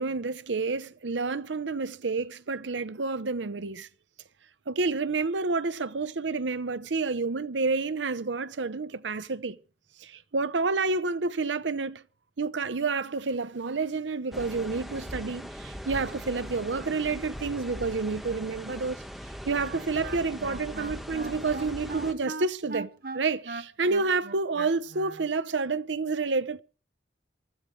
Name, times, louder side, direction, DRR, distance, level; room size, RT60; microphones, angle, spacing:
voice 1, 0.0-3.9 4.7-9.6 10.0-12.0 12.4-19.0 19.5-26.6, right 4 dB, 90° right, 0.8 m, -29 dB
sound 1, 14.3-22.1, equal, ahead, 1.8 m, -40 dB
Wind instrument woodwind instrument, 19.7-25.3, right 3 dB, 55° right, 1.0 m, -39 dB
24.0 x 14.0 x 3.2 m
head